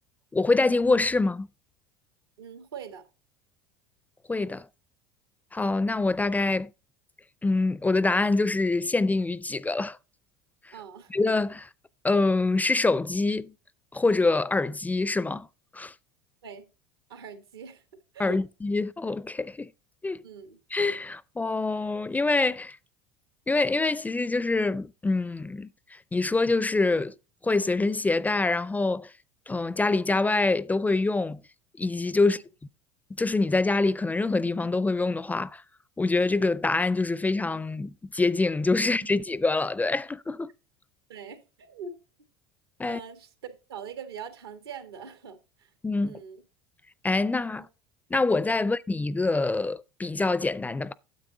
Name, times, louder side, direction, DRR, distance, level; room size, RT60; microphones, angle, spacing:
voice 1, 0.3-1.5 4.3-4.7 5.5-6.7 7.4-10.0 10.6-10.7 11.1-11.7 12.0-13.5 13.9-15.5 15.7-15.9 18.2-19.7 20.0-20.2 20.7-22.8 23.5-27.1 27.4-29.1 29.5-31.4 31.8-32.4 33.2-35.6 36.0-40.5 42.8-43.0 45.8-46.2 47.0-47.7 48.1-50.9, left 3 dB, 10° left, 0.4 m, -25 dB
voice 2, 2.4-3.0 10.7-11.1 16.4-16.7 17.1-17.8 18.1-18.4 20.2-20.6 32.2-32.4 38.8-39.1 41.1-42.0 42.8-45.7 46.0-46.4 47.5-47.7 48.6-48.7, right 6 dB, 85° right, 1.6 m, -42 dB
9.3 x 7.6 x 3.8 m
hypercardioid pair, 80°, 13 cm